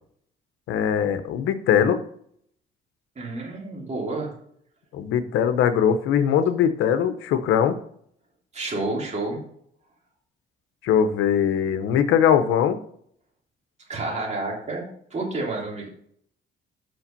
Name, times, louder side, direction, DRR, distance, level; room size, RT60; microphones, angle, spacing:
voice 1, 0.7-2.0 4.9-7.8 10.8-12.8, left 8 dB, 90° left, 11 dB, 0.9 m, -21 dB
voice 2, 3.1-4.3 8.5-9.4 13.9-15.9, right 2 dB, 35° right, -3 dB, 3.3 m, -30 dB
6.0 x 5.6 x 6.8 m, 0.65 s
cardioid pair, 90°, 20 cm